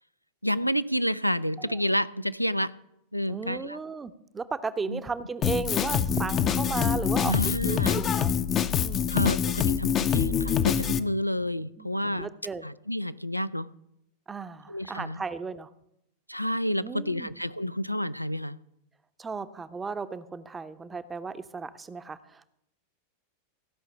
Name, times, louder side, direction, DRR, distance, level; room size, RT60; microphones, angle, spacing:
voice 1, 0.4-2.7 3.1-3.8 4.9-5.0 7.3-8.0 9.1-12.3 12.6-13.7 14.7-15.2 16.3-18.6, equal, 90° left, 15 dB, 0.4 m, -29 dB
voice 2, 3.3-8.3 8.8-9.2 11.8-12.7 14.3-15.7 16.8-17.3 19.2-22.4, right 4 dB, 15° right, 12 dB, 0.7 m, -35 dB
Drum kit, 5.4-11.0, left 8 dB, 30° left, 0.6 m, -25 dB
15.5 x 5.8 x 7.0 m, 0.81 s
figure-of-eight pair, 90°, 0 cm